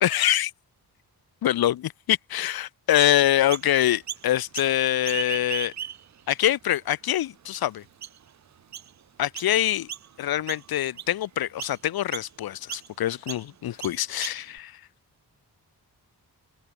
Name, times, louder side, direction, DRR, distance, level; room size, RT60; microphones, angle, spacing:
voice 1, 0.0-0.5 1.4-5.7 6.3-7.8 9.2-9.9 10.2-14.8, left 12 dB, 65° left, 0.5 m, -24 dB
Chirp tweet, 3.0-3.7 4.1-4.7 5.0-6.2 6.8-6.9 7.5-7.6 8.0-8.3 8.7-8.9 9.3-9.5 9.9-10.2 10.5-11.1 11.6-11.8 12.1-12.3 12.7-12.9 13.3-13.4 13.8-14.6, right 9 dB, 45° right, 0.6 m, -36 dB
open air
wide cardioid pair, 90°, 40 cm